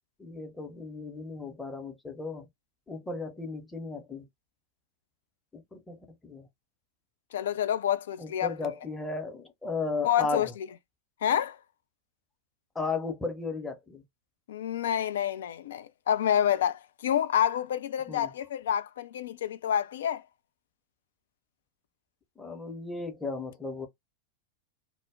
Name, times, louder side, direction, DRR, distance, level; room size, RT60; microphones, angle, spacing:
voice 1, 0.2-2.5 2.9-4.3 5.5-6.0 6.2-6.5 8.2-10.5 12.7-14.0 18.1-18.3 22.4-23.9, left 3 dB, 10° left, 0.7 m, -35 dB
voice 2, 7.3-8.7 10.0-10.7 11.2-11.6 14.5-20.2, left 10 dB, 60° left, 0.3 m, -28 dB
2.1 x 2.0 x 3.5 m
figure-of-eight pair, 90°, 0 cm